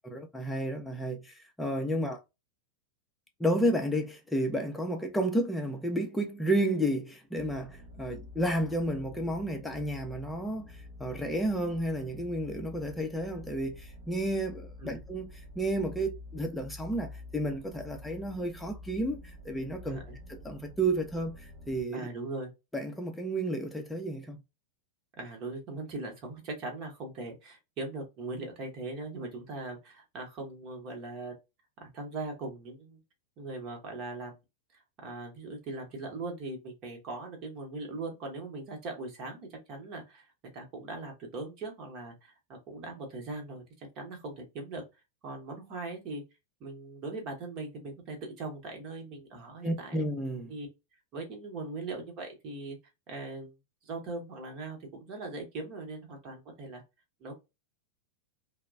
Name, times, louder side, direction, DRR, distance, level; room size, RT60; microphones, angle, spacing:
voice 1, 0.0-2.2 3.4-15.3 15.6-20.0 20.3-22.1 22.7-24.4 49.6-50.5, right 1 dB, 5° left, 0.6 m, -31 dB
sound 1, 7.4-21.8, left 2 dB, 65° right, 0.9 m, -48 dB
voice 2, 19.8-20.2 21.9-22.5 25.2-31.3 31.8-33.0 33.4-34.4 34.7-42.3 42.7-44.8 45.2-46.2 46.6-50.0 50.5-50.7 51.1-52.8 53.1-53.5 53.8-56.8 57.2-57.3, right 2 dB, 35° right, 1.0 m, -40 dB
3.0 x 2.1 x 2.4 m
figure-of-eight pair, 90°, 0 cm